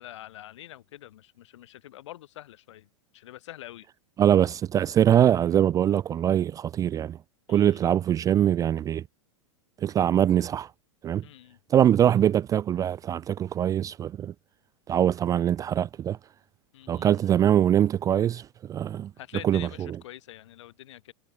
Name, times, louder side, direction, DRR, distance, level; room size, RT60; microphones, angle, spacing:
voice 1, 0.0-3.9 7.5-7.8 11.2-11.6 16.7-17.3 19.2-21.1, left 13 dB, 65° left, 6.6 m, -45 dB
voice 2, 4.2-7.2 7.5-9.0 9.8-10.7 11.0-11.2 11.7-14.3 14.9-16.2 16.9-19.1 19.4-19.9, right 10 dB, 20° right, 0.4 m, -23 dB
hypercardioid pair, 105°, 16 cm